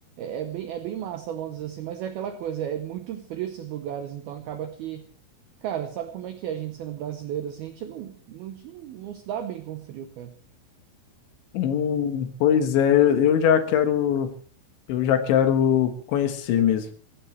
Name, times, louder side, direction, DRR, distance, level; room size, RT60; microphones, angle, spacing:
voice 1, 0.2-5.0 5.6-10.3, right 10 dB, 80° right, 8 dB, 2.2 m, -34 dB
voice 2, 11.5-14.3 14.9-16.9, left 9 dB, 70° left, 8 dB, 3.5 m, -21 dB
22.0 x 16.5 x 3.3 m, 0.42 s
omnidirectional pair, 5.8 m